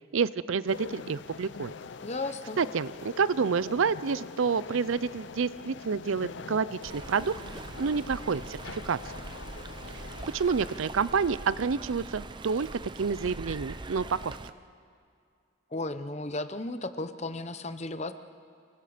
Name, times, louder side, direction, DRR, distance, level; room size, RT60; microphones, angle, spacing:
voice 1, 0.1-1.7 2.6-7.4 7.8-9.0 10.3-14.4, right 5 dB, 75° right, 18 dB, 0.5 m, -28 dB
sound 1, 0.7-10.8, left 5 dB, 60° left, 0.5 m, -44 dB
voice 2, 2.0-2.6 15.7-18.1, left 2 dB, 30° left, 11 dB, 0.8 m, -34 dB
Stream, 6.8-14.5, right 2 dB, 20° right, 0.5 m, -42 dB
27.0 x 22.5 x 5.1 m, 2.3 s
head